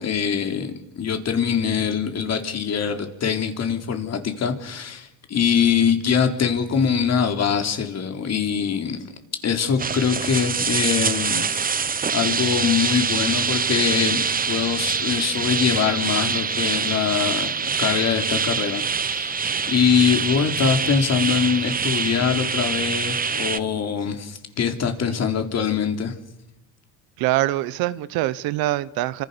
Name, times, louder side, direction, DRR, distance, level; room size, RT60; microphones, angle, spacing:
voice 1, 0.0-9.0 9.4-11.7 12.1-26.1, left 7 dB, 45° left, 3.8 m, -23 dB
sound 1, 9.8-23.6, right 6 dB, 25° right, 1.1 m, -25 dB
voice 2, 27.2-29.2, right 16 dB, 85° right, 1.2 m, -24 dB
29.5 x 25.5 x 6.9 m
cardioid pair, 105°, 35 cm